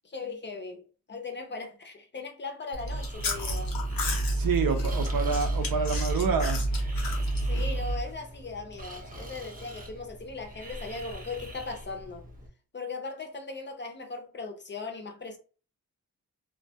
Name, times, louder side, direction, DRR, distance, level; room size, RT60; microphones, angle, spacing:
voice 1, 0.0-3.8 7.4-12.2 12.7-15.4, left 3 dB, 35° left, 0.5 m, -38 dB
Chewing mastication, 2.7-8.1, right 1 dB, 90° left, 0.7 m, -29 dB
Breathing, 2.8-12.5, right 1 dB, 25° right, 0.5 m, -44 dB
voice 2, 4.3-6.7, right 6 dB, 80° right, 0.5 m, -28 dB
2.2 x 2.1 x 2.7 m
wide cardioid pair, 105°, 34 cm